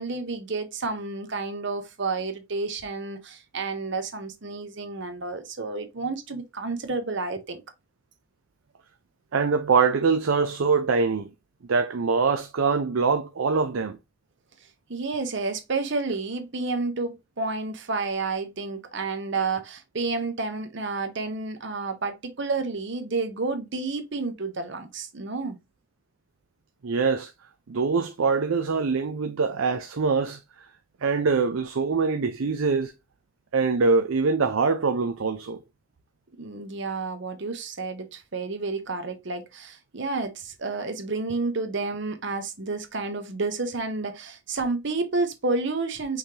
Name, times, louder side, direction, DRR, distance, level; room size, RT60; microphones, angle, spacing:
voice 1, 0.0-7.6 14.9-25.6 36.4-46.2, right 3 dB, 60° right, 0.9 m, -30 dB
voice 2, 9.3-11.3 11.7-14.0 26.8-27.3 27.7-30.4 31.0-32.9 33.5-35.6, right 4 dB, 85° right, 0.5 m, -23 dB
5.5 x 3.3 x 2.8 m
head